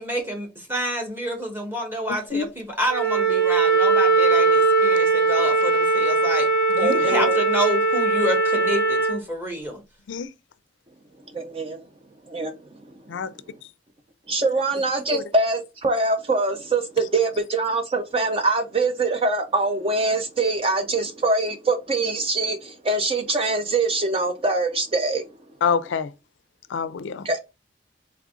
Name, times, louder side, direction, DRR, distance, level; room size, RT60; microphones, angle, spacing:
voice 1, 0.0-9.8, equal, 10° right, 1.2 m, -28 dB
Wind instrument woodwind instrument, 2.9-9.2, right 3 dB, 60° right, 2.7 m, -20 dB
voice 2, 6.8-7.4 11.3-11.8 12.3-12.5 14.3-25.3 27.2-27.4, right 3 dB, 30° right, 0.5 m, -23 dB
voice 3, 25.6-26.1 26.7-27.4, left 6 dB, 75° left, 0.4 m, -26 dB
3.7 x 3.4 x 3.6 m
head